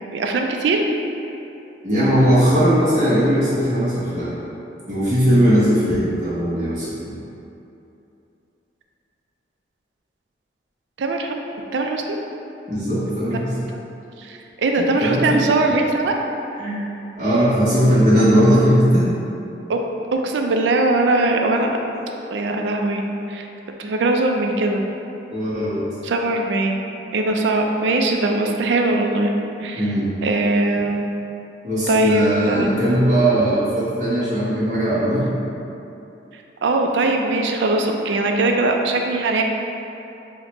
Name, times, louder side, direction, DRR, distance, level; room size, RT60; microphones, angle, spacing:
voice 1, 0.1-0.8 11.0-11.3 11.7-12.0 13.7-13.8 14.2-16.1 19.7-19.8 20.1-21.7 22.3-23.0 23.3-23.5 23.8-24.8 26.0-26.8 27.1-29.3 29.6-29.9 30.2-31.0 31.9-32.7 36.6-39.4, right 2 dB, 75° right, 2 dB, 0.4 m, -20 dB
voice 2, 1.8-4.3 4.9-7.2 12.7-13.5 14.8-15.4 16.6-16.8 17.2-19.1 25.3-25.8 29.8-30.1 31.6-35.3, equal, 40° right, -11 dB, 0.9 m, -18 dB
5.6 x 2.1 x 2.9 m, 2.8 s
head